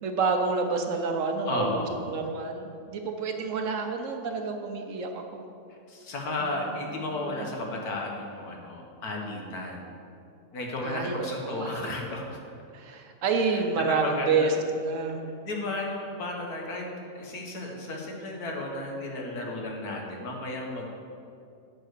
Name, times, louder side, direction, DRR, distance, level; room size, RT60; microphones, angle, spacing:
voice 1, 0.0-5.4 6.4-6.7 7.0-7.5 10.8-11.9 12.7-15.2, right 4 dB, 65° right, 5 dB, 1.0 m, -29 dB
voice 2, 1.5-2.0 5.9-9.9 10.5-12.4 13.4-14.5 15.5-16.9 17.1-20.9, left 2 dB, 90° left, 0 dB, 1.8 m, -34 dB
9.0 x 4.8 x 6.6 m, 2.5 s
omnidirectional pair, 1.6 m